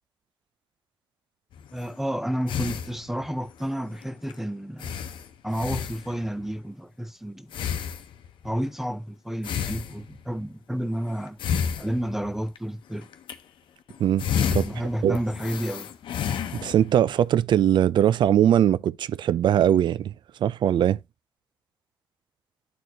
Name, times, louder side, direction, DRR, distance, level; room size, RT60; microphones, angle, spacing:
sound 1, 1.5-1.9 2.5-3.4 3.9-4.0 4.3-4.4 4.8-6.4 7.5-8.5 9.4-10.4 11.3-12.6 13.0-13.4 13.9-17.0, left 8 dB, 85° left, 0.8 m, -31 dB
voice 1, 1.7-5.0 5.4-7.5 8.4-11.4 11.8-13.1 14.5-15.9, equal, 5° right, 0.7 m, -31 dB
voice 2, 16.5-20.1 20.4-21.0, right 10 dB, 70° right, 0.4 m, -21 dB
9.2 x 4.4 x 3.0 m
cardioid pair, 90°, 8 cm